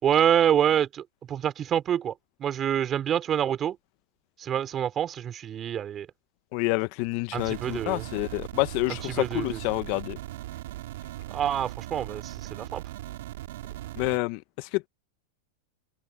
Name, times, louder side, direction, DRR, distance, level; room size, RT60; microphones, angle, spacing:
voice 1, 0.0-2.1 2.4-3.8 4.4-6.1 7.3-8.1 9.1-9.6 11.3-12.8, right 9 dB, 25° right, 3.3 m, -26 dB
voice 2, 6.5-10.2 14.0-14.9, left 24 dB, 50° left, 0.6 m, -28 dB
sound 1, 7.4-14.2, right 15 dB, 70° right, 3.4 m, -39 dB
supercardioid pair, 135°, 0 cm